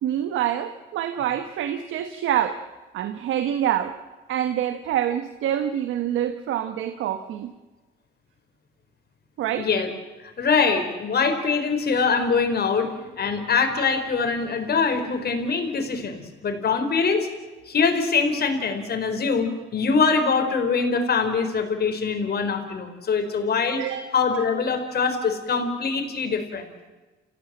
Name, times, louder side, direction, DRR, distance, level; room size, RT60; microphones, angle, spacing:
voice 1, 0.0-2.6 2.9-4.0 4.3-7.5 9.4-9.7 23.8-24.1, right 10 dB, 85° right, 9 dB, 1.3 m, -26 dB
voice 2, 9.6-9.9 10.2-17.3 17.7-23.8 24.1-26.6, left 5 dB, 55° left, 6 dB, 4.4 m, -23 dB
30.0 x 16.0 x 7.5 m, 1.2 s
cardioid pair, 90°, 20 cm